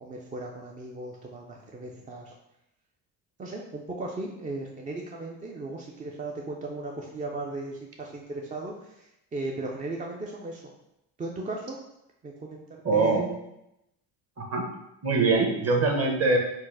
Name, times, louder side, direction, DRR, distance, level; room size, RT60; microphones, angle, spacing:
voice 1, 0.0-2.3 3.4-10.6 11.2-11.8 12.2-13.2, right 2 dB, 20° right, -1 dB, 0.3 m, -37 dB
voice 2, 12.8-13.3 14.4-14.6 15.0-16.4, right 3 dB, 35° right, 1 dB, 0.9 m, -23 dB
4.5 x 2.0 x 4.5 m, 0.84 s
cardioid pair, 125°, 40 cm